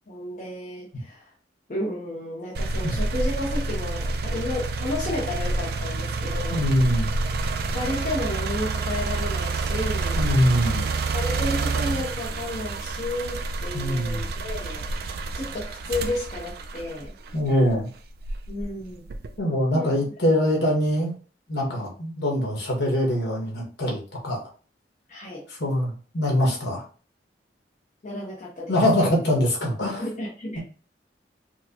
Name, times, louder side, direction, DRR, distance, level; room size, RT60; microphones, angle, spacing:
voice 1, 0.1-1.3 1.7-7.0 7.7-10.2 11.1-15.1 15.3-17.1 18.5-19.1 19.7-19.9 25.1-25.5 28.0-28.8 30.0-30.6, left 2 dB, 45° left, -4 dB, 0.8 m, -32 dB
sound 1, 2.5-17.6 18.2-19.4, right 3 dB, 60° right, 0.4 m, -28 dB
voice 2, 6.5-7.1 10.2-10.9 13.7-14.2 17.3-17.9 19.4-21.1 21.5-24.4 25.5-26.8 28.7-30.0, equal, 70° left, -2 dB, 1.6 m, -23 dB
4.6 x 2.2 x 2.9 m, 0.38 s
head